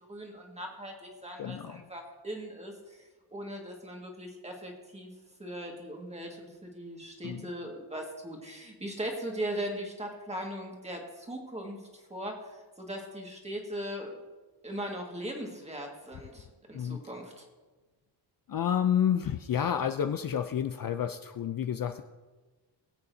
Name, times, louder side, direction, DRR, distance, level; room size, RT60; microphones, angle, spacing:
voice 1, 0.1-3.0 3.3-5.1 5.4-11.8 12.1-14.2 14.6-17.4, right 1 dB, 15° right, 0 dB, 1.8 m, -39 dB
voice 2, 1.4-1.8 7.2-7.5 16.7-17.0 18.5-22.0, left 9 dB, 50° left, 8 dB, 0.5 m, -30 dB
21.0 x 8.4 x 2.7 m, 1.3 s
wide cardioid pair, 165°, 45 cm